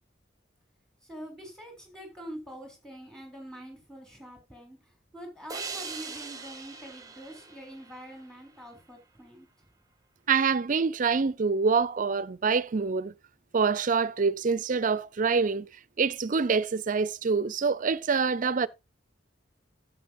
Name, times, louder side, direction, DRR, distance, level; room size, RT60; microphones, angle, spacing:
voice 1, 1.0-4.8 5.1-9.5, equal, 5° left, 4.0 m, -45 dB
sound 1, 5.5-8.8, right 4 dB, 20° right, 1.0 m, -41 dB
voice 2, 10.3-13.1 13.5-15.7 16.0-18.7, right 5 dB, 45° right, 0.5 m, -26 dB
13.0 x 8.5 x 2.6 m
head